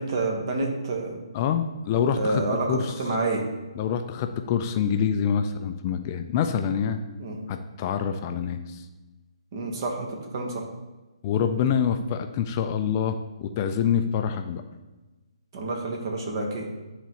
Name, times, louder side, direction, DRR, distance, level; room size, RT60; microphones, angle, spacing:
voice 1, 0.0-1.2 2.1-3.4 7.2-7.4 9.5-10.6 15.5-16.7, right 2 dB, 45° right, 1 dB, 1.3 m, -28 dB
voice 2, 1.3-2.4 2.7-3.0 3.8-7.0 7.5-8.8 11.2-14.6, left 7 dB, 30° left, 7 dB, 0.4 m, -26 dB
10.0 x 4.0 x 3.0 m, 1.2 s
figure-of-eight pair, 135°, 3 cm